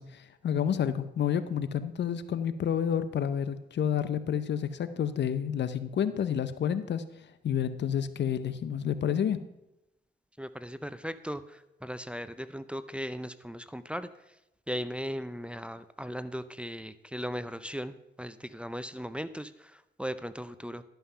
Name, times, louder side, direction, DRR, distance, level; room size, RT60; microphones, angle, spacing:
voice 1, 0.0-9.4, left 8 dB, 70° left, 13 dB, 0.6 m, -30 dB
voice 2, 10.4-14.4 14.7-20.8, equal, 5° right, 13 dB, 0.5 m, -38 dB
11.5 x 5.7 x 5.5 m, 0.90 s
cardioid pair, 65°, 19 cm